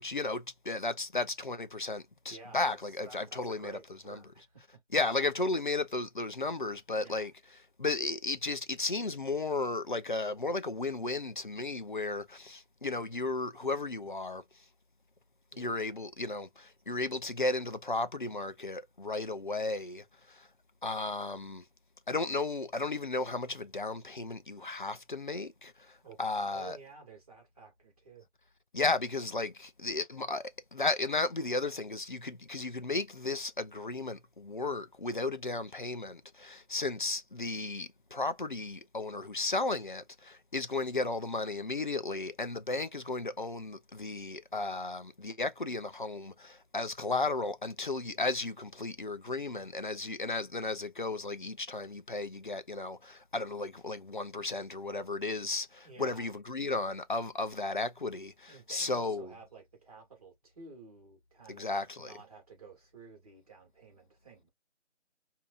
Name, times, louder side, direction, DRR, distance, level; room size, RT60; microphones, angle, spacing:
voice 1, 0.0-3.8 4.1-4.2 4.9-7.3 7.8-14.4 15.6-20.5 20.8-21.6 22.1-26.8 28.7-59.3 61.5-62.1, left 3 dB, 45° left, 0.5 m, -34 dB
voice 2, 2.3-4.8 6.9-7.3 15.5-15.8 26.0-28.3 55.8-56.3 58.5-64.5, right 5 dB, 30° right, 2.1 m, -52 dB
4.7 x 2.7 x 2.4 m
figure-of-eight pair, 170°, 35 cm